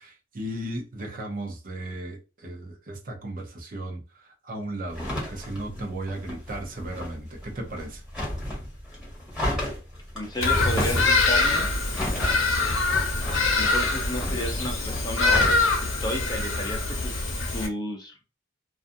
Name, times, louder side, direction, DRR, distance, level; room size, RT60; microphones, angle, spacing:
voice 1, 0.0-8.0, right 1 dB, 45° right, 0.6 m, -36 dB
sound 1, 4.9-15.7, left 1 dB, 5° right, 1.3 m, -33 dB
voice 2, 10.1-11.7 13.6-15.5 15.8-17.3 17.5-18.2, left 1 dB, 20° left, 0.6 m, -32 dB
Bird vocalization bird call bird song, 10.4-17.7, left 3 dB, 70° left, 0.8 m, -24 dB
2.5 x 2.4 x 2.5 m
head